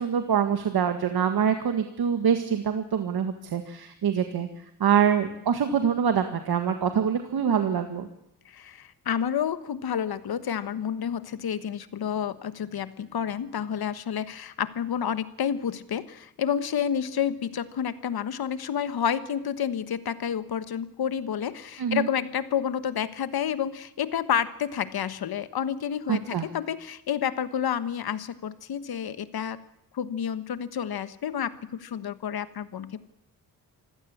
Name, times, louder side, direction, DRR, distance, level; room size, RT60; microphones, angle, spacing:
voice 1, 0.0-8.1 21.8-22.1 26.1-26.5, right 7 dB, 65° right, 7 dB, 1.9 m, -25 dB
voice 2, 8.4-29.6 29.9-31.5 31.8-33.1, left 8 dB, 65° left, 13 dB, 1.4 m, -30 dB
25.5 x 16.0 x 8.6 m, 0.80 s
wide cardioid pair, 140°, 40 cm